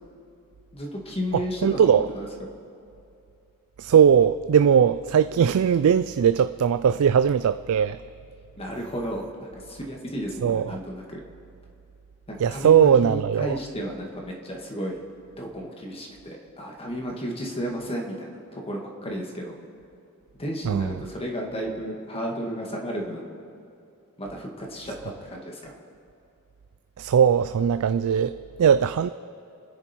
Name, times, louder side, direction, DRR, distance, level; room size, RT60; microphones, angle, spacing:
voice 1, 0.7-2.3 8.6-11.2 12.3-15.0 15.4-19.5 20.3-23.3 24.2-25.8, equal, 25° left, 0 dB, 2.1 m, -33 dB
voice 2, 1.3-2.1 3.8-8.0 10.4-10.8 12.4-13.6 20.6-20.9 27.0-29.1, right 8 dB, 70° right, 12 dB, 0.4 m, -20 dB
28.5 x 10.0 x 4.6 m, 2.6 s
head